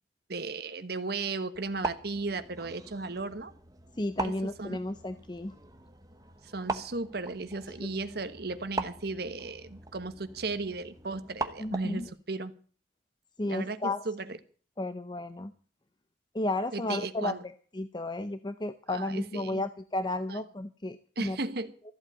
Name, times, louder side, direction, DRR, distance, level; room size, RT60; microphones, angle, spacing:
voice 1, 0.3-3.5 4.2-4.8 6.4-12.5 13.4-14.2 16.7-17.4 18.9-19.6 20.3-20.4 21.2-21.7, right 3 dB, 60° right, 1.3 m, -35 dB
sound 1, 1.5-12.1, right 3 dB, 20° right, 1.0 m, -40 dB
voice 2, 3.9-5.5 7.8-7.9 11.6-12.1 13.4-14.1 14.8-15.5 16.3-21.4, left 2 dB, 25° left, 0.6 m, -33 dB
14.5 x 8.1 x 8.7 m
head